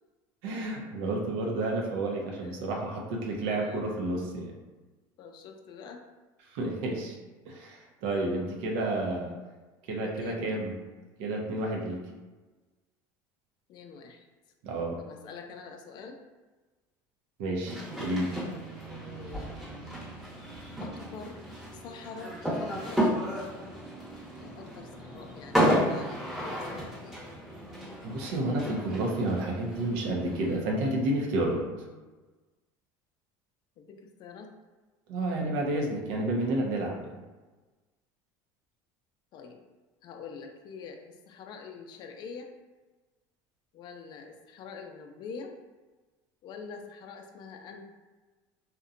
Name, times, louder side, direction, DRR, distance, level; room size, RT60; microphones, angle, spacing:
voice 1, 0.4-4.5 6.5-7.2 7.5-9.4 9.9-10.7 11.2-12.0 14.6-15.0 17.4-18.3 28.0-31.6 35.1-37.1, right 2 dB, 70° right, 0 dB, 0.5 m, -30 dB
voice 2, 2.3-2.7 3.4-3.8 5.2-6.0 9.9-10.6 13.7-14.3 15.0-16.2 18.9-19.6 20.8-21.4 21.8-23.3 24.4-27.2 31.8-32.0 33.8-34.5 39.3-39.6 40.0-42.5 43.7-45.5 46.4-47.8, left 5 dB, 45° left, 4 dB, 0.4 m, -45 dB
sound 1, 17.7-30.6, equal, 5° right, 0.8 m, -33 dB
2.7 x 2.1 x 2.4 m, 1.2 s
supercardioid pair, 115°, 10 cm